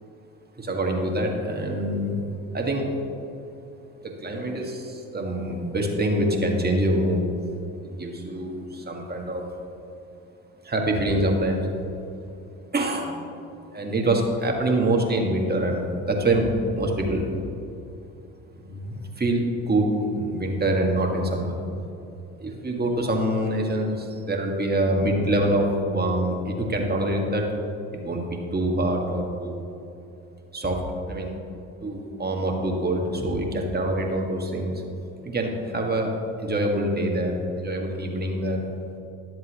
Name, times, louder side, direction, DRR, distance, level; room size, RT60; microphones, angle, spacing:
voice 1, 0.6-2.2 2.5-2.9 4.0-7.2 7.8-9.5 10.6-11.6 12.7-13.2 13.7-17.2 18.5-21.5 22.4-27.5 27.9-29.7 30.5-30.8 31.1-31.4 31.8-34.8 35.2-36.1 36.4-38.6, right 1 dB, 25° right, 1 dB, 1.6 m, -25 dB
11.0 x 7.6 x 3.0 m, 2.8 s
hypercardioid pair, 55°, 37 cm